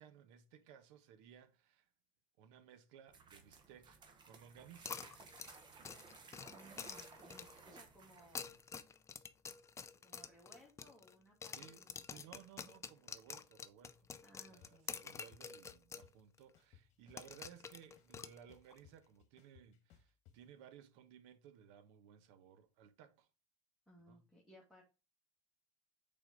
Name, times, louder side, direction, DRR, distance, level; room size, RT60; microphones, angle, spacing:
voice 1, 0.0-1.9 2.4-5.0 11.5-23.3 24.1-24.3, right 9 dB, 70° right, 1.0 m, -60 dB
sound 1, 3.1-8.7, right 4 dB, 30° right, 1.1 m, -58 dB
sound 2, 4.9-7.7 8.2-11.2 11.4-16.1 16.4-16.5 17.2-18.8, left 6 dB, 20° left, 0.4 m, -48 dB
voice 2, 6.5-8.6 10.0-12.2 14.2-15.0 23.9-24.8, equal, ahead, 1.9 m, -63 dB
sound 3, 14.6-14.7 15.1-16.1 16.5-17.6 18.0-20.4, left 9 dB, 45° left, 1.4 m, -64 dB
6.1 x 4.1 x 3.8 m
supercardioid pair, 125°, 16 cm